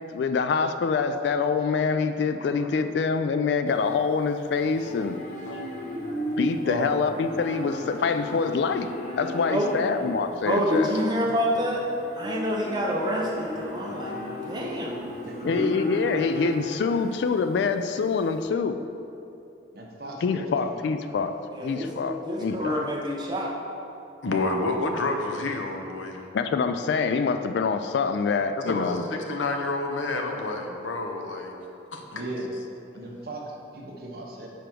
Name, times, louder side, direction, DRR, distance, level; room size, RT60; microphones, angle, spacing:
voice 1, 0.1-5.2 6.4-8.9 9.2-10.9 15.4-18.8 20.2-22.9 26.3-29.0, left 5 dB, 65° left, 8 dB, 0.3 m, -25 dB
Livestock farm animals working animals, 3.7-18.4, equal, 40° left, 1.0 m, -36 dB
voice 2, 5.5-6.0 9.3-9.4 12.3-12.4 24.2-26.3 28.6-31.5 31.9-32.2, left 2 dB, 85° left, 3 dB, 0.7 m, -29 dB
voice 3, 10.4-11.8 12.1-14.2 14.4-15.0 21.5-23.5, equal, 20° right, -2 dB, 0.8 m, -27 dB
voice 4, 15.2-15.7 19.7-20.9 22.6-22.8 32.1-32.5 32.9-34.5, right 2 dB, 50° right, -1 dB, 0.9 m, -37 dB
5.0 x 4.6 x 6.0 m, 2.7 s
head